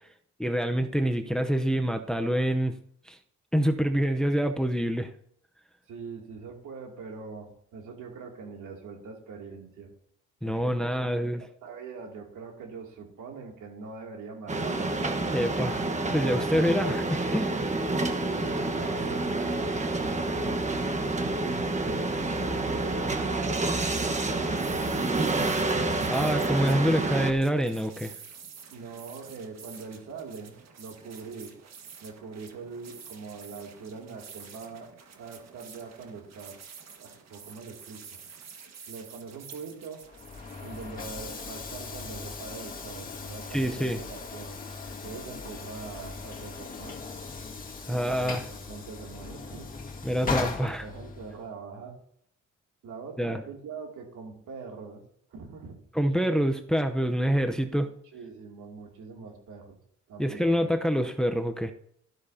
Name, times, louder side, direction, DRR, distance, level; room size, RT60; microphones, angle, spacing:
voice 1, 0.4-2.7 3.1-3.2 3.5-5.1 10.4-11.4 15.3-15.8 16.1-17.6 26.1-28.1 43.5-44.0 47.9-48.4 50.0-50.9 53.2-53.4 55.9-57.9 60.2-61.7, equal, ahead, 6 dB, 0.8 m, -26 dB
voice 2, 5.9-9.9 10.4-10.9 11.2-14.9 18.2-25.5 28.7-31.5 32.0-34.9 35.2-36.6 37.0-38.2 38.9-40.0 40.6-44.6 45.0-47.0 47.9-49.7 50.3-52.0 52.8-55.0 55.3-55.8 57.8-59.8 60.1-60.6, right 5 dB, 75° right, 1 dB, 2.8 m, -43 dB
sound 1, 14.5-27.3, right 2 dB, 25° right, 1.3 m, -28 dB
sound 2, 23.7-41.8, right 6 dB, 60° right, 1.7 m, -49 dB
Train / Sliding door, 40.0-51.5, left 4 dB, 30° left, 2.1 m, -38 dB
13.0 x 12.5 x 2.8 m, 0.67 s
cardioid pair, 90°, 30 cm